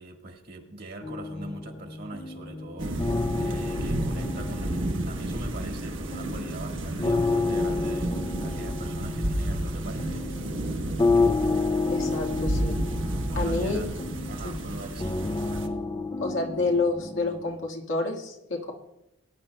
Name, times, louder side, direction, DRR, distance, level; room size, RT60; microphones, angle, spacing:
voice 1, 0.0-8.1 8.4-10.4 13.1-13.9 14.3-15.2, right 2 dB, 55° right, 3 dB, 1.6 m, -42 dB
sound 1, 1.0-5.7 6.1-17.7, left 3 dB, 25° left, 0.4 m, -30 dB
sound 2, 2.8-15.7, right 1 dB, 80° right, 1.2 m, -31 dB
voice 2, 11.9-12.8 13.4-13.8 14.4-14.7 16.2-18.7, left 3 dB, 85° left, 0 dB, 1.7 m, -29 dB
20.0 x 10.5 x 2.2 m, 0.90 s
head